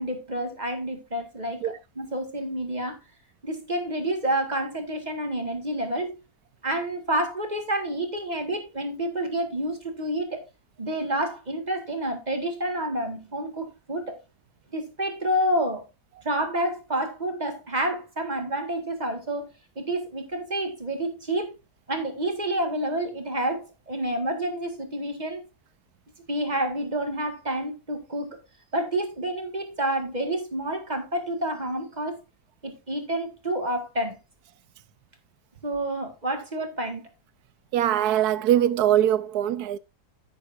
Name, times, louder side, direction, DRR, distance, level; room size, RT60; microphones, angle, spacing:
voice 1, 0.0-3.0 3.4-6.1 6.6-10.4 10.8-14.2 14.7-15.8 16.2-19.5 19.8-21.5 21.9-25.4 26.3-28.4 28.7-32.2 32.6-34.2 35.6-37.0, right 1 dB, 25° right, 1.9 m, -29 dB
voice 2, 37.7-39.8, right 11 dB, 75° right, 1.2 m, -22 dB
9.7 x 9.5 x 2.6 m
omnidirectional pair, 1.7 m